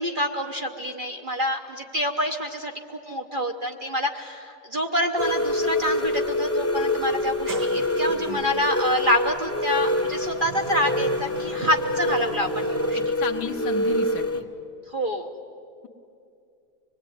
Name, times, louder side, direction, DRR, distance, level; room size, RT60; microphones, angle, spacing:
voice 1, 0.0-13.1 14.9-15.3, equal, 35° right, 3 dB, 1.1 m, -27 dB
sound 1, 5.2-14.4, left 1 dB, 15° left, 0.6 m, -26 dB
Sliding door, 7.1-13.1, right 5 dB, 75° right, 2.1 m, -42 dB
voice 2, 12.9-14.5, left 6 dB, 70° left, 5 dB, 1.8 m, -33 dB
25.5 x 20.5 x 9.3 m, 2.5 s
omnidirectional pair, 1.9 m